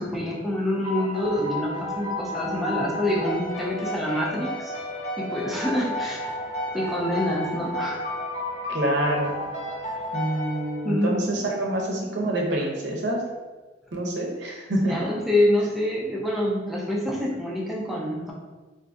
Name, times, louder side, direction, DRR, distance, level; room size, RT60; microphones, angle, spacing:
voice 1, 0.0-4.7 5.2-6.2 6.7-8.0 10.8-11.5 14.9-18.3, left 1 dB, ahead, -5 dB, 0.5 m, -26 dB
sound 1, 0.8-11.2, left 1 dB, 35° left, 0.7 m, -32 dB
voice 2, 8.7-9.4 10.1-13.3 13.9-15.0, right 1 dB, 65° right, -1 dB, 0.7 m, -26 dB
3.5 x 2.6 x 2.5 m, 1.2 s
head